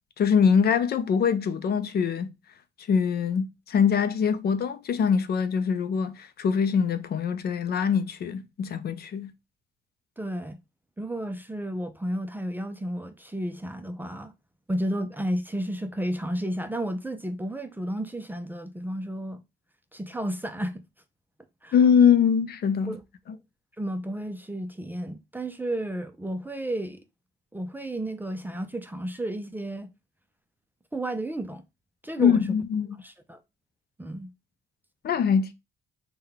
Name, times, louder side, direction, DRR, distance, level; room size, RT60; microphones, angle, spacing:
voice 1, 0.2-2.3 2.9-9.3 21.7-23.0 23.3-23.4 32.2-33.0 35.0-35.5, left 7 dB, 50° left, 0.5 m, -23 dB
voice 2, 10.2-10.6 11.0-14.3 14.7-19.4 19.9-20.8 21.6-21.7 22.9-23.0 23.8-27.0 27.5-29.9 30.9-31.6 32.0-32.5 33.0-33.4 34.0-34.3, right 1 dB, 10° right, 0.4 m, -32 dB
3.6 x 2.2 x 3.4 m
cardioid pair, 90°, 20 cm